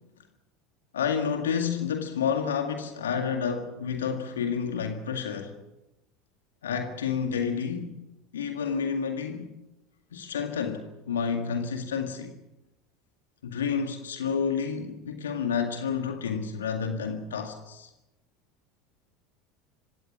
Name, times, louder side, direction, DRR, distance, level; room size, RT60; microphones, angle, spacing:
voice 1, 0.9-5.6 6.6-7.9 8.3-9.5 10.1-12.4 13.4-17.9, left 6 dB, 75° left, 1.9 m, -30 dB
26.5 x 17.0 x 7.3 m
figure-of-eight pair, 70°, 0 cm